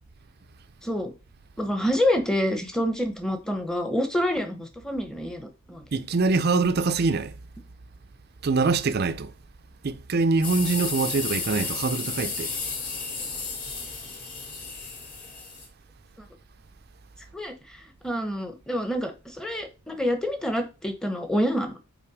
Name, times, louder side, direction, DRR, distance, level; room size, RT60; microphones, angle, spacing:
voice 1, 0.8-1.1 1.6-5.8 17.3-21.8, equal, 5° left, 0.9 m, -27 dB
voice 2, 5.9-7.4 8.4-9.3 9.8-12.5, right 3 dB, 45° right, 0.5 m, -24 dB
sound 1, 10.4-15.7, left 4 dB, 40° left, 2.2 m, -33 dB
5.8 x 4.4 x 4.8 m
head